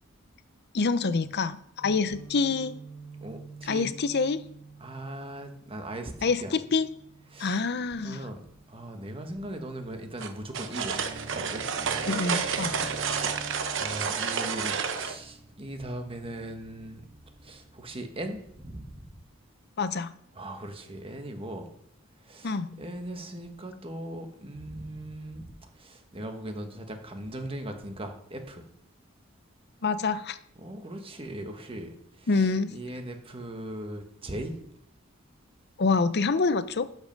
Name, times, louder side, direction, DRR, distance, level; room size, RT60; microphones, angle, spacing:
voice 1, 0.7-2.8 3.7-4.4 6.2-6.9 7.4-8.3 12.1-12.9 19.8-20.1 22.4-22.7 29.8-30.4 32.3-32.8 35.8-36.8, left 4 dB, 55° left, 13 dB, 0.7 m, -26 dB
Guitar, 1.8-9.7, right 4 dB, 15° left, 2.8 m, -49 dB
voice 2, 3.2-3.9 4.8-6.1 6.4-6.5 7.3-7.7 8.0-8.4 8.7-11.0 11.3-11.6 13.3-13.5 13.8-17.0 17.4-18.9 20.3-21.7 22.3-25.5 25.8-28.6 30.6-31.9 32.2-34.5, right 1 dB, 25° right, 5 dB, 1.4 m, -39 dB
sound 1, 10.2-15.1, right 6 dB, 65° right, 1.0 m, -30 dB
sound 2, 10.8-18.7, right 2 dB, 85° right, 2.6 m, -46 dB
12.5 x 5.4 x 5.3 m, 0.73 s
head